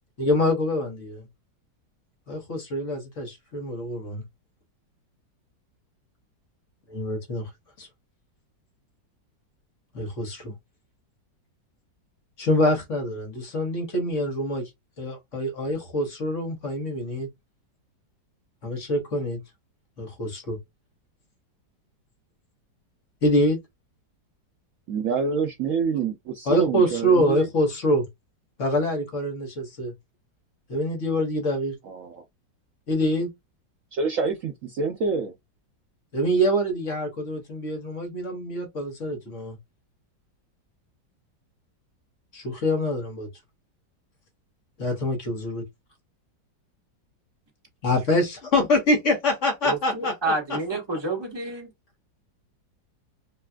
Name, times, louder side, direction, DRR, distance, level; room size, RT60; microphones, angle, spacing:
voice 1, 0.2-1.2 2.3-4.2 6.9-7.5 7.8-7.9 9.9-10.5 12.4-14.7 15.0-17.3 18.6-19.4 20.0-20.6 23.2-23.6 26.4-28.1 28.6-29.9 30.7-31.8 32.9-33.3 36.1-39.6 42.3-43.3 44.8-45.6 47.8-50.3, left 1 dB, 45° left, 1.3 m, -25 dB
voice 2, 24.9-27.5 31.9-32.2 33.9-35.3, right 5 dB, 75° right, 0.7 m, -27 dB
voice 3, 49.6-51.7, right 2 dB, 15° right, 1.1 m, -29 dB
4.1 x 2.4 x 2.2 m
omnidirectional pair, 2.0 m